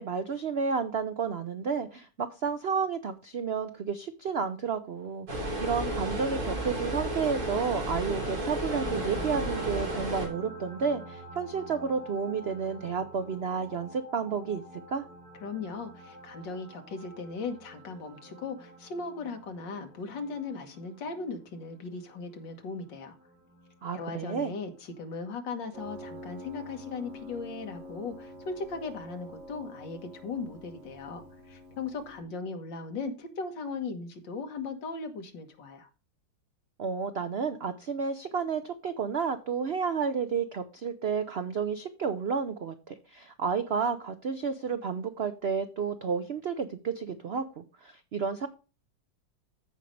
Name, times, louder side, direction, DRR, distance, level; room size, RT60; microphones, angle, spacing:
voice 1, 0.0-14.6 14.9-15.0 23.8-24.5 36.8-48.5, right 6 dB, 75° right, 10 dB, 0.5 m, -31 dB
sound 1, 5.3-10.3, right 1 dB, 55° right, 3.5 m, -32 dB
sound 2, 8.6-25.8 27.4-27.5, equal, 5° right, 2.3 m, -48 dB
voice 2, 15.4-23.2 23.9-35.9, left 4 dB, 80° left, 6 dB, 2.1 m, -38 dB
Piano, 25.7-32.2, left 1 dB, 40° right, 2.6 m, -46 dB
14.5 x 5.2 x 3.2 m, 0.33 s
omnidirectional pair, 2.0 m